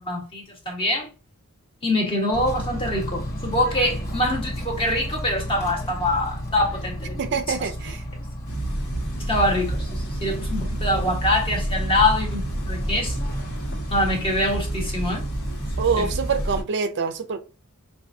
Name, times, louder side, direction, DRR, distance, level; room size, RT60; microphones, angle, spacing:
voice 1, 0.0-1.1 1.8-7.2 7.5-7.6 9.2-13.3 13.9-15.2 16.0-16.1, left 1 dB, 25° left, 1.3 m, -24 dB
Bird / Train, 2.3-15.7, equal, 45° left, 1.6 m, -34 dB
voice 2, 7.2-8.0 15.8-17.4, right 5 dB, 55° right, 0.4 m, -25 dB
sound 1, 8.5-16.6, right 1 dB, 65° left, 1.6 m, -29 dB
5.6 x 2.5 x 2.6 m
head